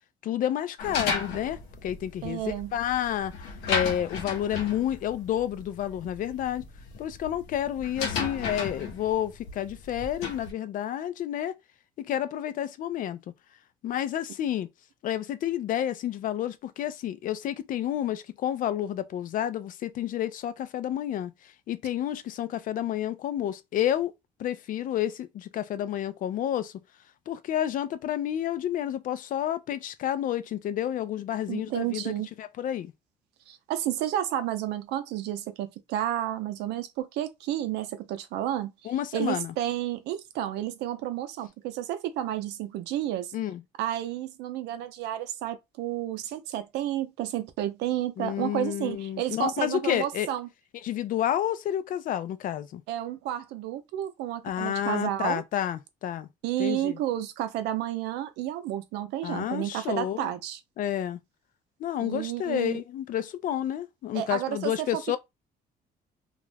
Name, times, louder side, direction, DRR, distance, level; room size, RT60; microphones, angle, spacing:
voice 1, 0.2-3.3 3.7-6.7 7.0-11.5 12.0-13.2 13.8-14.7 15.0-21.3 21.7-24.1 24.4-26.7 27.3-32.1 32.4-32.9 38.8-39.5 43.3-43.6 48.2-50.3 50.8-52.8 54.4-56.3 56.6-57.0 59.2-60.3 60.8-61.2 61.8-65.2, left 11 dB, 55° left, 0.4 m, -30 dB
sound 1, 0.8-10.5, left 5 dB, 80° left, 0.9 m, -35 dB
voice 2, 2.2-2.7 31.5-32.3 33.5-43.3 43.8-50.5 52.9-55.4 56.4-60.6 62.0-62.8 64.1-64.9, right 12 dB, 85° right, 0.5 m, -31 dB
2.4 x 2.1 x 3.2 m
cardioid pair, 110°, 17 cm